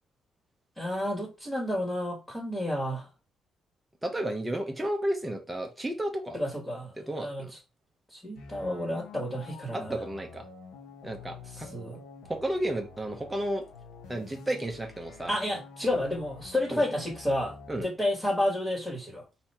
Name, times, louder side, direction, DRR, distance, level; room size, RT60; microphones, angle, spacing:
voice 1, 0.8-3.1 6.3-7.6 8.1-10.0 11.5-12.0 15.3-19.2, left 1 dB, 10° left, 2.0 m, -31 dB
voice 2, 4.0-6.4 7.0-7.5 9.7-10.4 11.0-11.7 12.3-13.6 14.1-15.3 16.7-16.8 17.7-17.9, right 1 dB, 10° right, 0.9 m, -32 dB
sound 1, 8.4-17.8, left 4 dB, 85° left, 1.0 m, -48 dB
4.2 x 2.8 x 4.4 m
cardioid pair, 90°, 0 cm